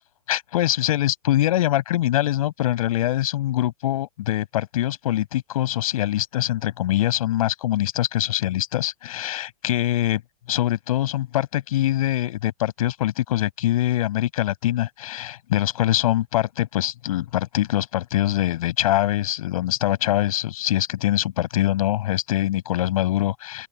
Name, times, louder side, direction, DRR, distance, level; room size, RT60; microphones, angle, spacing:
voice 1, 0.3-10.2 10.5-23.7, left 14 dB, 65° left, 6.5 m, -23 dB
open air
hypercardioid pair, 125°, 20 cm